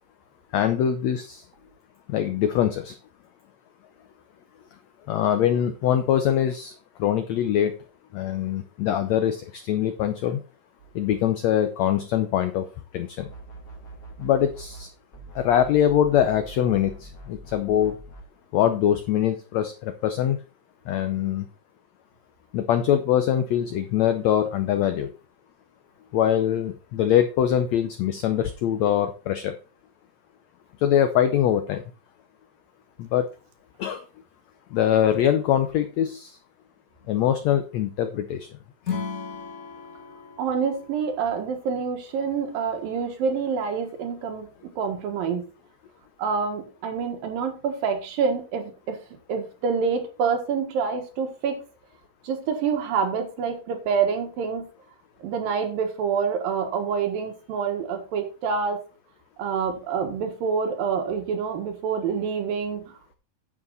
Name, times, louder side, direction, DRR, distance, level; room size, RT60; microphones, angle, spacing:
voice 1, 0.5-1.4 2.1-2.9 5.1-6.7 7.0-7.8 8.1-10.4 10.9-12.6 12.9-13.2 14.2-14.9 15.3-17.9 18.5-20.4 20.9-21.4 22.5-25.1 26.1-29.5 30.8-31.8 33.0-33.3 33.8-34.0 34.7-36.3 37.1-38.5, left 10 dB, 85° left, 9 dB, 1.5 m, -23 dB
sound 1, 13.2-14.9 15.1-18.3, right 2 dB, 30° left, 2.0 m, -43 dB
Acoustic guitar / Strum, 38.8-42.1, left 6 dB, 60° left, 0.9 m, -36 dB
voice 2, 40.4-44.5 44.8-45.4 46.2-49.0 49.3-51.6 52.2-54.7 55.2-58.8 59.4-63.1, right 6 dB, 80° right, 5 dB, 3.3 m, -27 dB
9.7 x 7.6 x 4.0 m, 0.34 s
omnidirectional pair, 4.0 m